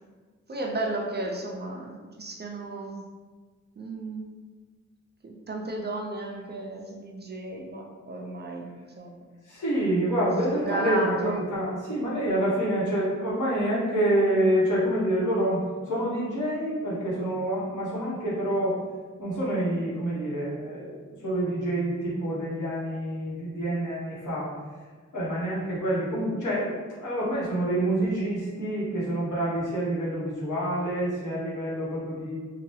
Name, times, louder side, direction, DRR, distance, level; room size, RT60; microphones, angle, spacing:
voice 1, 0.5-3.0 3.8-4.2 5.2-8.7 9.0-9.2 10.5-11.4, right 2 dB, 35° right, 0 dB, 0.4 m, -33 dB
voice 2, 9.4-18.8 19.2-24.5 25.1-32.3, right 1 dB, 80° left, -7 dB, 1.1 m, -27 dB
2.8 x 2.2 x 3.1 m, 1.4 s
wide cardioid pair, 75°, 30 cm